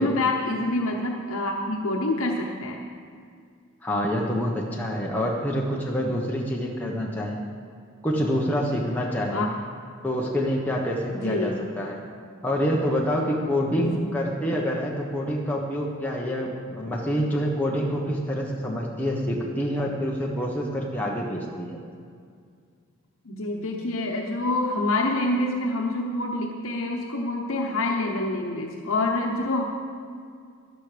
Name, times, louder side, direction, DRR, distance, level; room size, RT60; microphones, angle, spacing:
voice 1, 0.0-2.8 9.3-9.5 11.1-11.6 13.7-14.0 23.3-29.6, left 2 dB, 75° left, 1 dB, 0.9 m, -26 dB
voice 2, 3.8-7.4 8.0-9.4 10.0-12.0 12.4-21.8, equal, 10° left, -3 dB, 1.1 m, -27 dB
12.5 x 11.5 x 5.0 m, 2.2 s
head